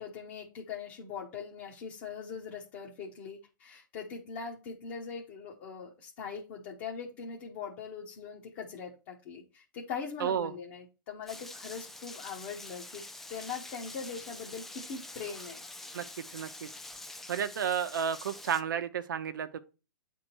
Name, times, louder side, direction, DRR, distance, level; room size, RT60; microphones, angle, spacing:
voice 1, 0.0-13.0 13.3-15.6, left 6 dB, 35° left, 1.2 m, -41 dB
voice 2, 10.2-10.5 15.9-16.0 16.3-16.7 17.3-19.6, right 8 dB, 80° right, 0.8 m, -32 dB
Rain, 11.3-18.6, left 2 dB, 5° left, 0.3 m, -46 dB
8.9 x 3.7 x 4.5 m
hypercardioid pair, 165°, 11 cm